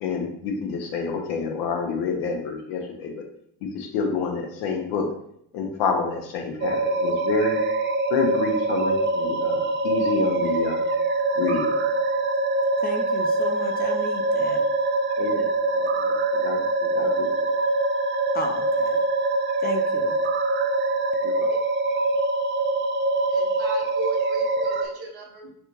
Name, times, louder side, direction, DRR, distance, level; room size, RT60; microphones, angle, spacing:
voice 1, 0.0-3.2 3.6-5.1 5.5-7.6 8.1-10.8 11.3-11.7 15.2-15.5 15.7-16.6 16.9-17.5 21.2-21.5, left 5 dB, 75° left, 2 dB, 0.8 m, -28 dB
sound 1, 6.6-24.9, right 2 dB, 30° right, 0.3 m, -24 dB
voice 2, 12.8-14.6 18.3-19.0 19.6-20.2, left 3 dB, 25° left, 3 dB, 0.6 m, -34 dB
voice 3, 23.3-25.5, right 5 dB, 65° right, -1 dB, 1.0 m, -36 dB
3.3 x 2.5 x 3.0 m, 0.70 s
hypercardioid pair, 55°, 41 cm